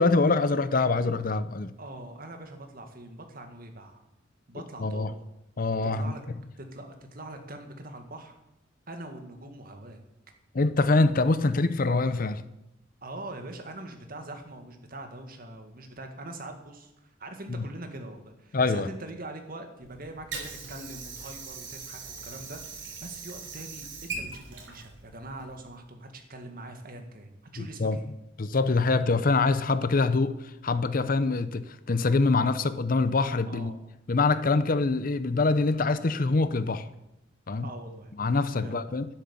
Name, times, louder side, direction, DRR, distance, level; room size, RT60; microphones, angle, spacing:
voice 1, 0.0-1.7 4.8-5.1 5.6-6.1 10.5-12.4 17.5-17.6 18.5-18.9 27.6-28.0 28.4-30.4 30.6-33.7 34.1-36.9 37.5-37.7 38.2-39.1, left 3 dB, 45° left, 0.6 m, -24 dB
voice 2, 1.8-4.0 4.5-5.2 5.8-6.2 6.6-8.4 8.9-10.0 13.0-28.1 33.4-33.8 37.6-38.1 38.5-39.0, right 2 dB, 50° right, 1.9 m, -43 dB
Water / Sink (filling or washing), 19.8-25.8, right 4 dB, 70° right, 3.4 m, -41 dB
11.0 x 11.0 x 7.1 m
head